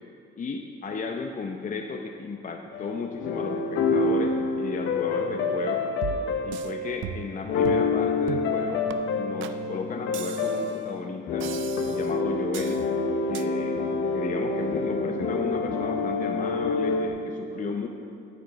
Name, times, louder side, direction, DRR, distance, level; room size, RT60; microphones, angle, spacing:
voice 1, 0.4-5.9 6.4-8.9 9.1-11.5 11.9-12.8 13.3-17.9, left 4 dB, 40° left, 3 dB, 0.7 m, -34 dB
sound 1, 2.7-17.1, left 3 dB, 75° left, 0.9 m, -27 dB
sound 2, 6.0-6.7 7.0-7.4 7.6-7.9 8.3-8.5 8.9-9.0 9.4-9.6 10.1-10.8 11.4-12.1 12.5-12.8 13.3-13.5, right 10 dB, 75° right, 0.5 m, -37 dB
9.4 x 5.1 x 7.5 m, 2.7 s
cardioid pair, 90°, 20 cm